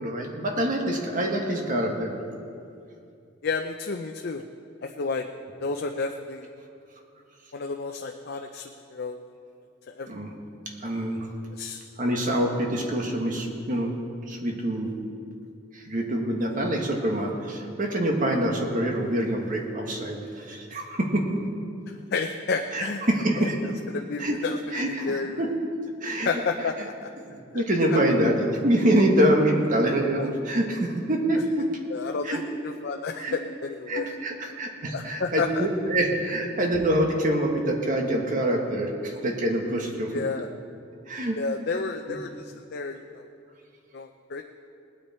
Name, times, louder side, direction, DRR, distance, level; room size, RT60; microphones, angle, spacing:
voice 1, 0.0-2.1 10.1-10.3 10.8-11.3 12.0-14.0 14.3-14.9 15.7-21.4 22.7-23.6 24.2-24.4 24.7-25.5 26.0-26.4 26.8-26.9 27.2-31.7 32.2-32.4 33.2-33.4 33.9-40.1 41.1-41.4 42.1-42.2, right 1 dB, 45° right, 1 dB, 1.6 m, -25 dB
voice 2, 3.4-4.4 4.8-5.3 5.6-6.5 7.5-9.2 9.9-10.1 11.6-11.8 12.3-12.7 21.9-23.0 23.4-23.5 23.9-24.6 24.9-25.4 26.3-27.1 27.5-27.6 30.2-30.3 31.9-34.1 34.9-35.7 40.1-40.5 41.4-43.3 43.9-44.4, left 4 dB, 60° left, 4 dB, 0.6 m, -31 dB
19.5 x 9.3 x 4.4 m, 2.5 s
head